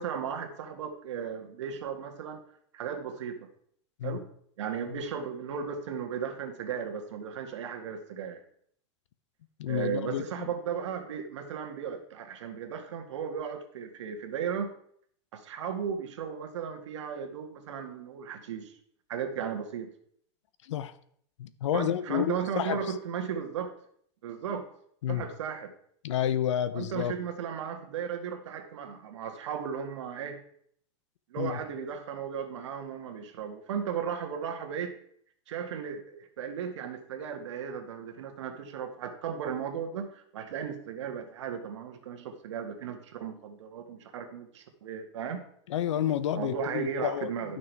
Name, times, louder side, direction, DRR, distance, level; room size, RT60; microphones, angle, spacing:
voice 1, 0.0-2.4 2.7-3.5 4.0-4.3 4.6-8.4 9.7-14.7 15.3-18.8 19.1-19.9 21.7-23.7 24.2-24.7 25.1-25.7 26.7-30.4 31.3-35.0 35.5-45.5 46.3-47.6, right 7 dB, 75° right, 5 dB, 1.8 m, -35 dB
voice 2, 9.6-10.5 20.6-20.9 21.4-22.8 25.0-25.2 26.0-27.1 31.4-31.6 45.7-47.3, left 10 dB, 80° left, 15 dB, 0.8 m, -30 dB
11.5 x 6.3 x 4.6 m, 0.65 s
supercardioid pair, 175°, 15 cm